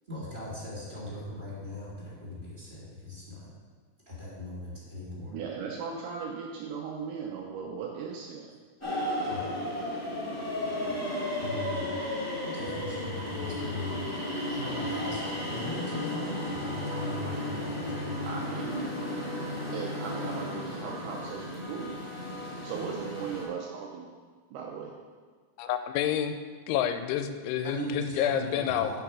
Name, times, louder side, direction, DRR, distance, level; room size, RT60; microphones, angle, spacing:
voice 1, 0.1-3.5 4.0-5.3 9.2-9.5 11.4-11.9 12.4-13.9 14.5-18.4 27.6-29.0, left 1 dB, 25° right, -9 dB, 1.2 m, -39 dB
voice 2, 5.3-8.5 18.2-19.2 19.7-21.9 22.6-24.1 24.5-24.9, right 6 dB, 80° right, -1 dB, 1.9 m, -37 dB
sound 1, 8.8-23.4, left 1 dB, 20° left, 0.4 m, -34 dB
voice 3, 25.6-26.4 26.7-28.9, left 10 dB, 85° left, 9 dB, 2.6 m, -29 dB
6.8 x 5.8 x 6.0 m, 1.5 s
omnidirectional pair, 4.7 m